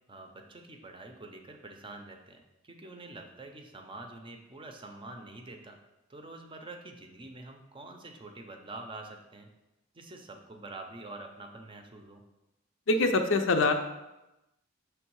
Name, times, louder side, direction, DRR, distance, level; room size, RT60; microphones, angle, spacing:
voice 1, 0.1-5.8 6.1-9.5 9.9-12.2, right 2 dB, 25° right, 4 dB, 0.6 m, -46 dB
voice 2, 12.9-13.7, left 3 dB, 70° left, 6 dB, 0.6 m, -24 dB
6.1 x 3.3 x 4.7 m, 0.96 s
head